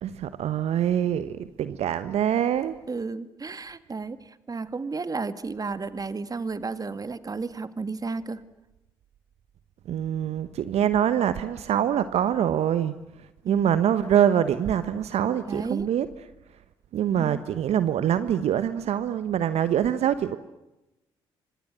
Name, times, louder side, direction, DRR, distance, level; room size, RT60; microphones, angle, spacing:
voice 1, 0.0-2.8 9.9-16.1 16.9-20.4, right 10 dB, 60° right, 13 dB, 1.2 m, -24 dB
voice 2, 2.9-8.4 13.5-13.8 15.3-15.9 17.2-17.4, right 4 dB, 30° right, 13 dB, 2.1 m, -33 dB
29.0 x 26.0 x 7.6 m, 0.96 s
hypercardioid pair, 45°, 12 cm